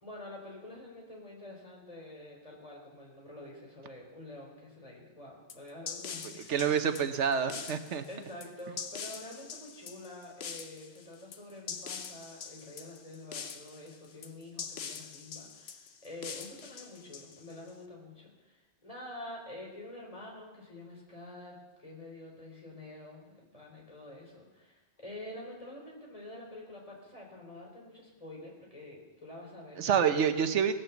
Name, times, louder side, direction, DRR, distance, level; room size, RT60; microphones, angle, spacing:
voice 1, 0.0-6.6 6.8-7.1 8.1-30.3, left 1 dB, 30° left, -3 dB, 3.8 m, -47 dB
sound 1, 5.5-17.7, left 6 dB, 65° left, 1.1 m, -43 dB
voice 2, 6.2-8.0 29.8-30.8, right 7 dB, 85° right, 9 dB, 1.2 m, -28 dB
18.5 x 6.7 x 7.1 m, 1.1 s
omnidirectional pair, 1.2 m